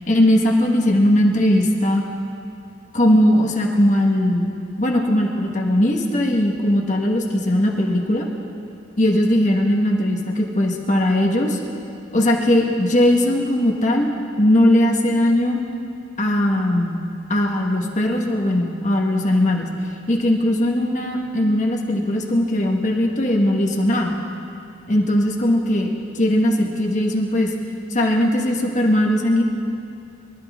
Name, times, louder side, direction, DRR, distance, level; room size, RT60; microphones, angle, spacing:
voice 1, 0.1-2.0 2.9-4.5 4.8-8.3 9.0-11.6 12.1-14.1 14.4-15.6 16.2-17.0 17.3-19.7 20.1-24.1 24.9-27.5 27.9-29.4, left 1 dB, 40° left, 0 dB, 1.4 m, -19 dB
24.5 x 12.5 x 3.6 m, 2.6 s
head